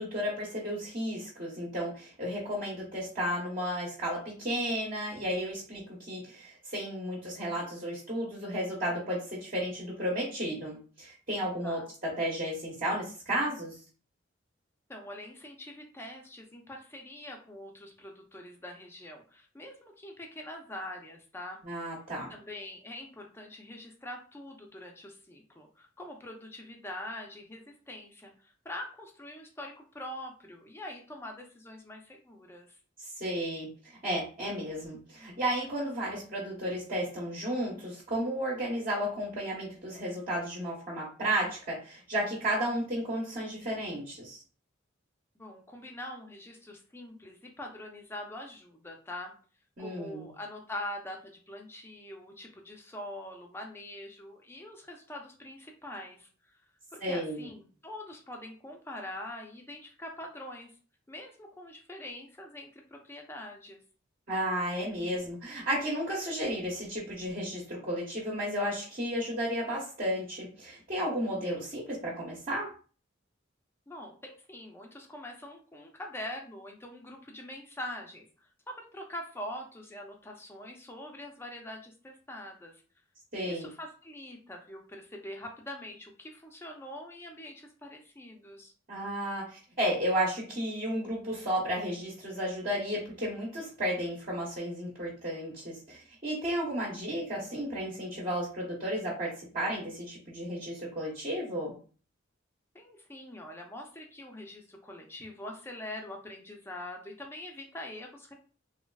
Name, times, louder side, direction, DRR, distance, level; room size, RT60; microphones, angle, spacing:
voice 1, 0.0-13.8 21.6-22.3 33.2-44.4 49.8-50.3 57.0-57.5 64.3-72.7 83.3-83.7 88.9-101.7, equal, 40° right, -5 dB, 0.9 m, -33 dB
voice 2, 14.9-21.6 22.3-32.8 45.4-49.3 49.8-56.3 56.9-60.7 61.1-63.8 73.9-82.7 83.3-88.7 102.7-108.3, left 1 dB, 10° left, 2 dB, 0.5 m, -44 dB
3.4 x 2.3 x 2.3 m, 0.39 s
head